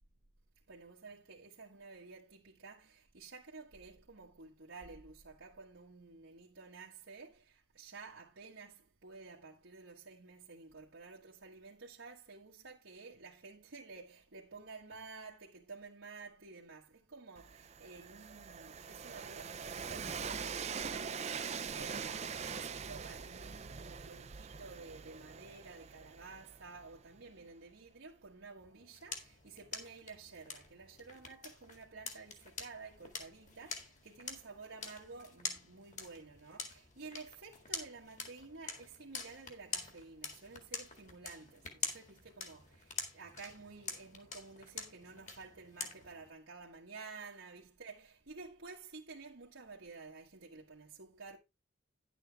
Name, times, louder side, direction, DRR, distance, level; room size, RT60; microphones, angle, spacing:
voice 1, 0.7-51.4, right 4 dB, 75° right, 1.4 m, -52 dB
Train, 17.4-27.2, right 6 dB, 35° right, 0.5 m, -43 dB
sound 1, 28.6-46.3, left 5 dB, 35° left, 1.9 m, -46 dB
10.5 x 7.9 x 3.4 m
head